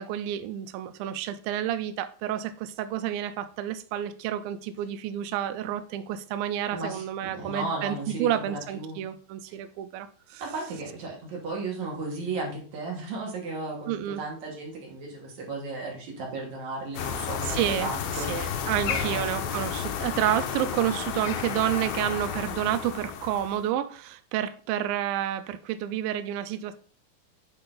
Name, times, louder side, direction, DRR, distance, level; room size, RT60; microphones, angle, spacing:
voice 1, 0.0-10.4 13.9-14.2 17.4-26.7, right 11 dB, 80° right, 2.2 m, -30 dB
voice 2, 6.7-9.0 10.4-18.6 18.9-19.2 20.2-20.4, right 3 dB, 55° right, 2.8 m, -35 dB
sound 1, 17.0-23.6, left 8 dB, 90° left, 2.6 m, -32 dB
8.4 x 3.8 x 3.9 m
omnidirectional pair, 4.3 m